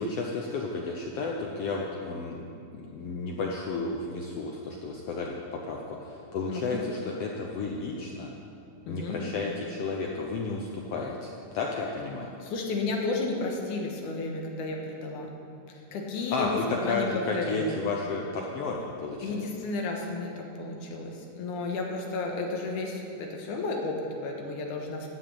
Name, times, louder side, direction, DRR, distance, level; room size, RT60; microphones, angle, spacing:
voice 1, 0.0-2.4 2.7-8.3 8.9-12.3 16.3-19.4, left 3 dB, 90° left, -1 dB, 1.3 m, -32 dB
voice 2, 6.5-6.8 8.9-9.2 12.4-15.3 15.7-17.8 19.2-25.1, left 3 dB, 70° left, 1 dB, 2.6 m, -33 dB
13.5 x 6.0 x 8.6 m, 2.5 s
omnidirectional pair, 3.9 m